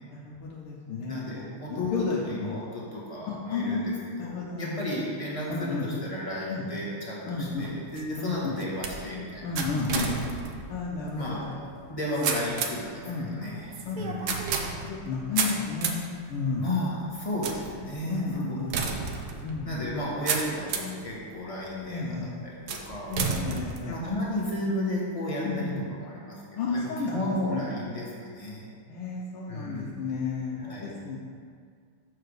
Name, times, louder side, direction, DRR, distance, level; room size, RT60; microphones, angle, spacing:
voice 1, 0.1-1.4 1.7-2.6 3.3-3.9 4.2-4.9 5.5-5.9 6.5-6.6 7.3-7.7 8.2-8.5 9.4-10.3 10.7-11.6 13.1-13.4 13.9-14.2 14.6-16.7 18.1-18.8 19.4-19.9 21.9-22.3 23.1-23.9 25.4-25.8 26.6-27.6 28.9-31.2, left 4 dB, 90° left, -4 dB, 1.7 m, -32 dB
voice 2, 1.0-1.9 2.2-3.9 4.2-10.1 11.2-14.4 16.5-18.3 18.8-19.4 19.6-22.3 22.7-23.1 23.9-25.7 26.0-26.4 26.7-28.7 29.5-30.1 30.6-30.9, left 1 dB, 20° left, -6 dB, 1.3 m, -33 dB
sound 1, 7.4-21.0 21.6-22.1 22.7-24.5, right 5 dB, 65° right, 1.0 m, -34 dB
6.7 x 4.8 x 6.4 m, 2.1 s
omnidirectional pair, 2.4 m